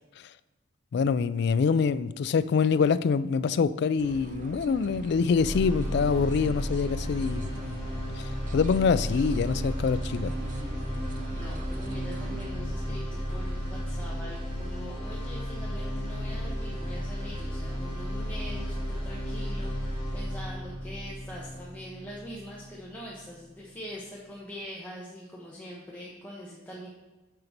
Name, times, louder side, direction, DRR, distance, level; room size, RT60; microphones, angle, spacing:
voice 1, 0.9-7.5 8.1-10.3, left 5 dB, 60° left, 0.3 m, -25 dB
sound 1, 4.0-12.5, right 2 dB, 40° right, 0.6 m, -41 dB
sound 2, 5.4-23.4, equal, 30° left, 2.2 m, -34 dB
voice 2, 11.3-26.9, equal, 10° left, 1.1 m, -43 dB
6.7 x 5.3 x 5.8 m
head